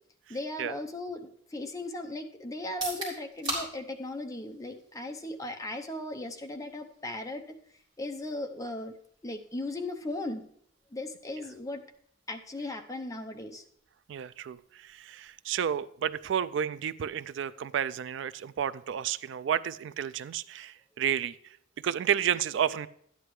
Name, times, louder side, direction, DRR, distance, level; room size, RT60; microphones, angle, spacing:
voice 1, 0.3-7.4 8.0-8.9 9.2-10.5 10.9-11.8 12.3-13.6, left 1 dB, 15° left, 4 dB, 0.7 m, -37 dB
sound 1, 2.6-16.5, right 1 dB, 25° right, 3.6 m, -46 dB
voice 2, 14.1-21.6 21.8-22.9, right 9 dB, 65° right, 16 dB, 0.3 m, -31 dB
12.5 x 9.7 x 3.1 m, 0.67 s
head